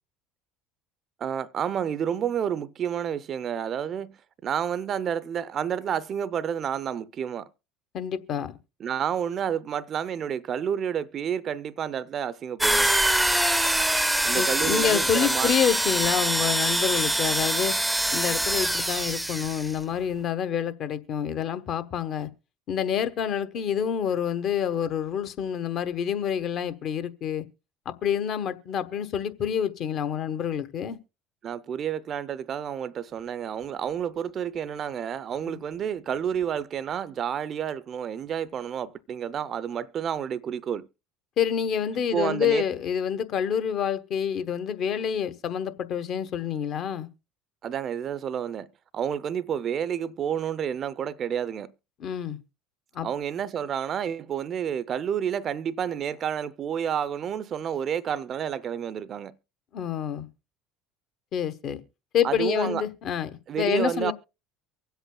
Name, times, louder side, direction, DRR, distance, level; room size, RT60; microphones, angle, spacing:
voice 1, 1.2-7.5 8.8-12.9 14.2-15.6 31.4-40.9 42.1-42.6 47.6-48.7 48.9-51.7 53.0-59.4 62.2-62.8 63.5-64.1, right 8 dB, 45° right, 0.5 m, -30 dB
voice 2, 7.9-8.6 14.3-17.7 18.1-22.3 22.7-27.4 27.8-31.0 35.5-35.6 41.4-47.1 52.0-52.4 52.9-53.1 59.7-60.3 61.3-61.8 62.1-63.3 63.6-64.1, left 8 dB, 50° left, 1.1 m, -27 dB
sound 1, 12.6-19.7, right 1 dB, 5° right, 0.6 m, -24 dB
24.0 x 8.0 x 2.2 m
hypercardioid pair, 75°, 0 cm